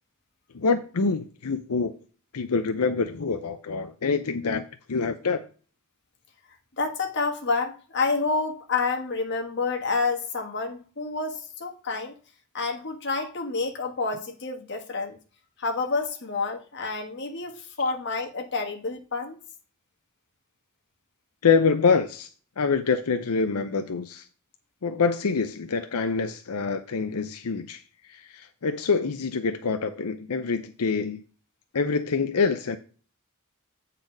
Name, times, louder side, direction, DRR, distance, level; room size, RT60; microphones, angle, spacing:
voice 1, 0.5-1.9 2.3-5.4 21.4-22.3 22.6-24.2 24.8-27.8 28.1-31.2 31.7-32.8, left 5 dB, 85° left, 0.6 m, -25 dB
voice 2, 6.8-12.1 12.5-15.2 15.6-19.4, left 4 dB, 55° left, 1.4 m, -29 dB
8.8 x 4.1 x 5.2 m
head